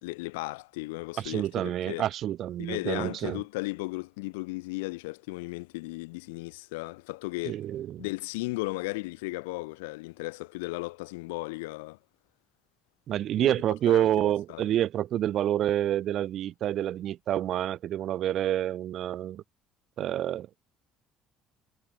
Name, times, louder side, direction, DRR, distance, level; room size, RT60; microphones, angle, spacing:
voice 1, 0.0-2.0 2.6-7.6 8.0-12.0 13.4-13.5 13.9-14.7, left 24 dB, 70° left, 3.0 m, -35 dB
voice 2, 1.2-3.4 7.5-8.0 13.1-19.4 20.0-20.5, right 12 dB, 55° right, 2.2 m, -28 dB
figure-of-eight pair, 55°, 0 cm